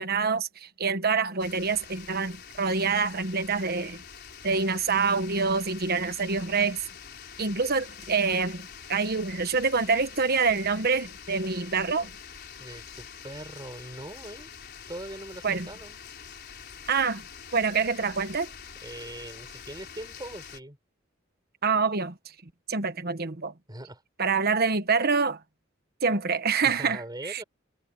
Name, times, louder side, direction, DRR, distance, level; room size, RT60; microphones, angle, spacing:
voice 1, 0.0-4.0 4.4-6.8 7.4-12.1 15.4-15.7 16.9-17.3 17.5-18.5 21.6-23.5 24.2-25.4 26.0-27.4, right 5 dB, 50° right, 1.3 m, -26 dB
sound 1, 1.4-20.6, left 7 dB, 55° left, 4.4 m, -45 dB
voice 2, 12.6-14.5 14.9-16.0 18.8-20.8 23.7-24.0 26.6-27.4, right 1 dB, 20° right, 6.6 m, -41 dB
head